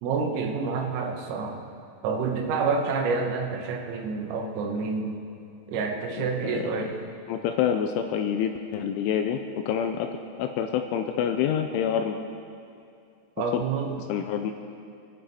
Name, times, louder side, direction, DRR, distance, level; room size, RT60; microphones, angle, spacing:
voice 1, 0.0-1.6 2.0-5.2 5.7-7.0 13.4-14.0, right 4 dB, 80° right, 2 dB, 3.8 m, -28 dB
voice 2, 7.3-9.4 9.7-10.1 10.4-12.2 13.5-13.6 14.1-14.6, left 8 dB, 80° left, 6 dB, 2.9 m, -27 dB
24.0 x 11.5 x 4.3 m, 2.5 s
omnidirectional pair, 5.9 m